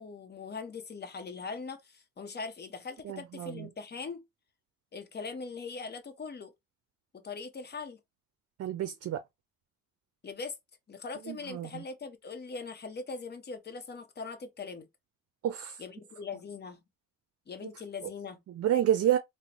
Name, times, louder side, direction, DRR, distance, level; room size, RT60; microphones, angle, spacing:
voice 1, 0.0-4.2 4.9-6.5 7.2-8.0 10.2-10.6 10.9-14.8 15.8-16.8 17.5-18.4, left 4 dB, 35° left, 0.9 m, -41 dB
voice 2, 3.0-3.7 8.6-9.2 11.3-11.8 15.4-15.8 18.5-19.2, right 11 dB, 55° right, 0.5 m, -29 dB
3.7 x 2.1 x 3.0 m
cardioid pair, 90°, 30 cm